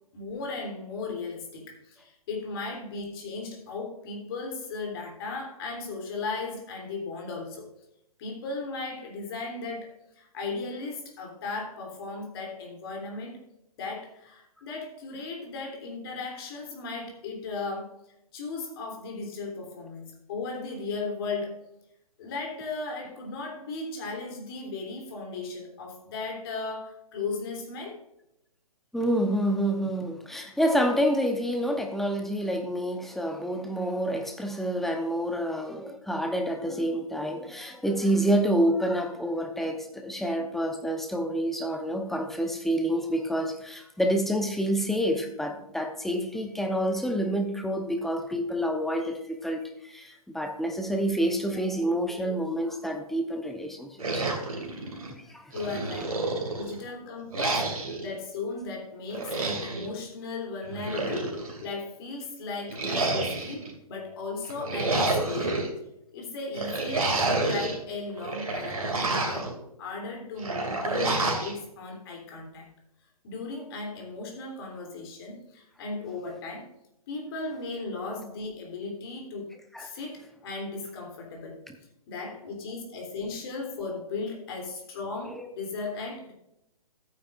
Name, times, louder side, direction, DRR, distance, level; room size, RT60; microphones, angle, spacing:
voice 1, 0.1-7.7 8.2-13.4 13.8-17.9 18.3-21.6 22.2-28.0 55.5-56.2 56.5-65.6 66.1-69.5 69.8-72.7 73.2-76.7 77.1-79.5 79.8-81.6 82.1-86.3, left 3 dB, 40° left, 0 dB, 3.2 m, -36 dB
voice 2, 28.9-54.3 55.3-55.5 79.7-79.9, equal, ahead, 4 dB, 0.8 m, -28 dB
sound 1, 54.0-55.1 55.5-56.8 57.3-58.1 59.1-59.9 60.7-61.6 62.7-63.7 64.5-65.7 66.5-67.8 68.2-69.5 70.4-71.5, right 2 dB, 70° right, 2.5 m, -29 dB
14.0 x 9.2 x 2.5 m, 0.83 s
figure-of-eight pair, 130°, 19 cm